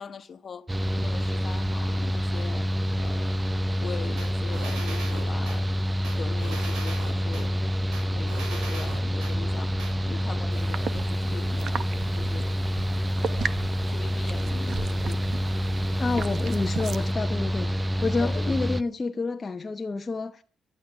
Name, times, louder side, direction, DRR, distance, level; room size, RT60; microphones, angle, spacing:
voice 1, 0.0-2.7 3.0-3.4 3.8-5.8 6.2-7.6 8.1-11.9 12.1-12.6 13.2-13.6 13.9-15.2 18.2-18.4, left 6 dB, 45° left, 1.4 m, -41 dB
Mechanical fan, 0.7-18.8, equal, 15° right, 0.6 m, -27 dB
sound 1, 4.2-5.6 6.0-7.5 7.9-9.3 9.8-9.9, right 3 dB, 85° right, 6.9 m, -39 dB
sound 2, 10.5-17.1, right 7 dB, 55° right, 1.1 m, -37 dB
voice 2, 16.0-17.7 18.0-20.4, left 3 dB, 30° left, 0.9 m, -29 dB
14.5 x 12.5 x 7.1 m
cardioid pair, 90°, 0 cm